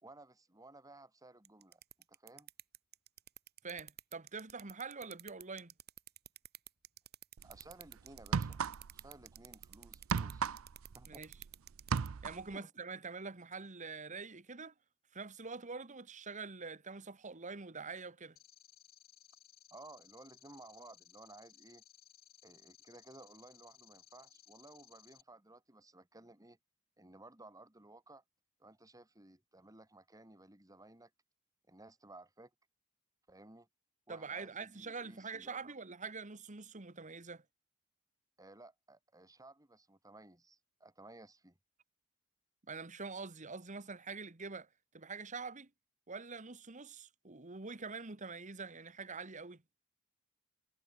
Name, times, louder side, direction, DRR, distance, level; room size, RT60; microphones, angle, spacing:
voice 1, 0.0-1.8 2.1-2.5 7.4-8.6 8.9-10.6 10.9-11.2 12.5-12.7 19.7-21.8 22.4-26.6 27.0-28.2 28.6-31.1 31.7-32.5 33.3-33.7 34.1-35.6 38.4-41.6, right 2 dB, 15° right, 2.9 m, -57 dB
sound 1, 1.5-12.1, right 12 dB, 50° right, 4.7 m, -50 dB
voice 2, 3.6-5.7 11.1-11.3 12.2-14.7 15.1-18.4 34.1-37.4 42.7-44.7 44.9-45.7 46.1-49.6, right 4 dB, 35° right, 1.5 m, -45 dB
sound 2, 7.4-7.6 8.2-9.1 9.4-11.5 11.8-12.5, right 6 dB, 80° right, 0.5 m, -35 dB
sound 3, 18.4-25.2, left 12 dB, 50° left, 3.5 m, -62 dB
head